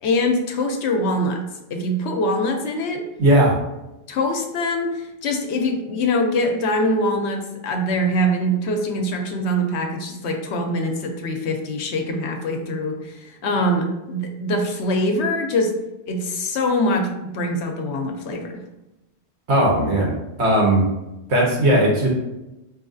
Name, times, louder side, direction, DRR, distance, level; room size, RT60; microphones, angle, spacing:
voice 1, 0.0-1.4 1.7-3.0 4.1-15.7 16.1-18.6, left 1 dB, 85° left, 3 dB, 1.0 m, -23 dB
voice 2, 3.2-3.5 19.5-20.1 20.4-20.9 21.3-22.1, right 1 dB, 80° right, -2 dB, 1.4 m, -17 dB
4.7 x 3.0 x 2.6 m, 0.96 s
omnidirectional pair, 1.1 m